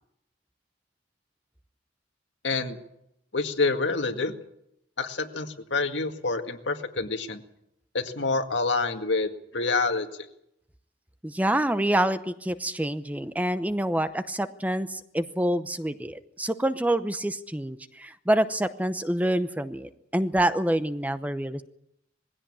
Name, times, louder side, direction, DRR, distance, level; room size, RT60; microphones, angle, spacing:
voice 1, 2.4-2.8 3.3-4.3 5.0-7.4 7.9-10.1, left 3 dB, 85° left, 6 dB, 2.0 m, -27 dB
voice 2, 11.2-21.6, right 1 dB, 10° right, 11 dB, 0.8 m, -27 dB
21.0 x 16.0 x 8.7 m, 0.80 s
head